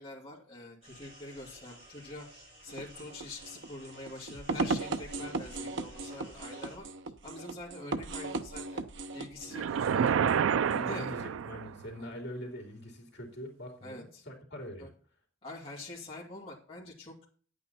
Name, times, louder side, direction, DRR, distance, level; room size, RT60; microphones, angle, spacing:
voice 1, 0.0-2.3 2.6-6.8 7.2-8.8 9.1-10.3 10.8-11.1 12.0-12.1 13.8-14.2 14.8-14.9 15.4-17.3, left 2 dB, 30° left, -4 dB, 2.7 m, -45 dB
sound 1, 0.8-6.8, right 1 dB, 35° right, 6.7 m, -54 dB
sound 2, 2.7-10.9, right 3 dB, 65° right, 0.8 m, -37 dB
sound 3, 9.5-11.9, right 7 dB, 85° right, 0.4 m, -28 dB
voice 2, 10.4-14.9, equal, 60° left, 0 dB, 2.9 m, -43 dB
10.5 x 8.9 x 4.1 m, 0.43 s
head